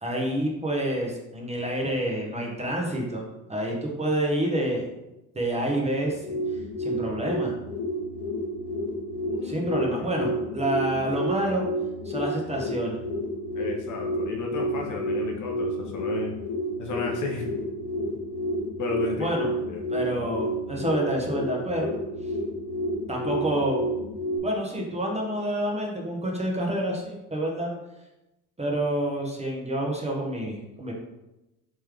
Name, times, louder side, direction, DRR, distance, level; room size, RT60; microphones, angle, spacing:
voice 1, 0.0-3.2 3.5-4.8 5.3-6.2 6.8-7.5 9.4-11.6 12.0-13.0 19.2-19.5 19.9-21.9 23.1-23.8 24.4-27.7 28.6-30.9, right 1 dB, 15° right, -1 dB, 0.9 m, -28 dB
sound 1, 6.0-24.4, equal, 80° left, 0.9 m, -30 dB
voice 2, 9.3-9.8 13.5-16.4 16.8-17.5 18.8-19.4 19.7-19.9, left 3 dB, 40° left, 2 dB, 0.7 m, -33 dB
3.3 x 3.3 x 3.3 m, 0.96 s
hypercardioid pair, 80°, 48 cm